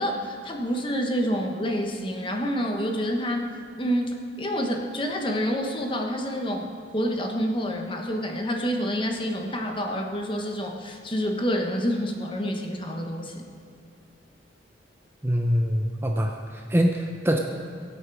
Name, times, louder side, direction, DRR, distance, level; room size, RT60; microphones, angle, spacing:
voice 1, 0.0-3.4 3.8-13.5, equal, 25° left, 2 dB, 1.3 m, -28 dB
voice 2, 15.2-17.4, equal, 10° right, 2 dB, 0.7 m, -24 dB
22.5 x 8.2 x 4.8 m, 2.3 s
head